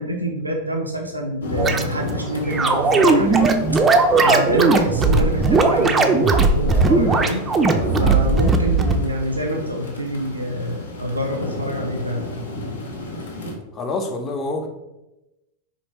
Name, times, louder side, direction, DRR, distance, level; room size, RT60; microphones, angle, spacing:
voice 1, 0.0-3.5 4.2-7.5 8.0-12.3, equal, 85° right, 1 dB, 0.4 m, -26 dB
sound 1, 1.4-13.5, left 1 dB, 70° left, 0.7 m, -32 dB
sound 2, 1.6-1.8 2.5-9.0, right 3 dB, 20° right, 0.4 m, -17 dB
voice 2, 13.7-14.7, left 2 dB, 25° left, 4 dB, 0.6 m, -26 dB
4.0 x 2.8 x 3.3 m, 0.96 s
figure-of-eight pair, 90°, 0 cm